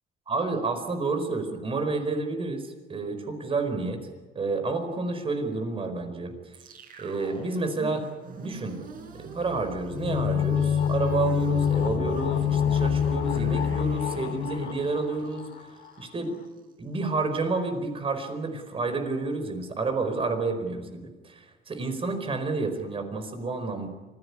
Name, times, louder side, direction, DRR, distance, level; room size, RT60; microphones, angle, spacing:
voice 1, 0.3-4.0 4.3-6.3 7.0-8.0 8.3-8.8 9.2-15.5 16.0-16.4 16.8-23.9, right 3 dB, 35° right, 8 dB, 4.7 m, -30 dB
sound 1, 6.5-16.7, right 5 dB, 55° right, 4.4 m, -45 dB
sound 2, 9.9-15.6 15.8-15.9, left 8 dB, 70° left, 2.9 m, -26 dB
25.5 x 16.5 x 9.7 m, 1.3 s
cardioid pair, 110°, 17 cm